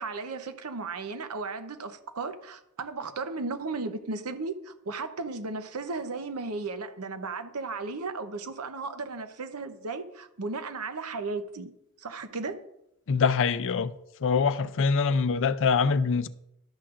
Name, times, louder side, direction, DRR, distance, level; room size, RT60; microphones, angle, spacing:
voice 1, 0.0-11.7 12.0-12.6, right 3 dB, 80° right, 0.9 m, -35 dB
voice 2, 13.1-14.0 14.2-16.3, left 5 dB, 60° left, 0.5 m, -24 dB
12.5 x 8.5 x 2.5 m
head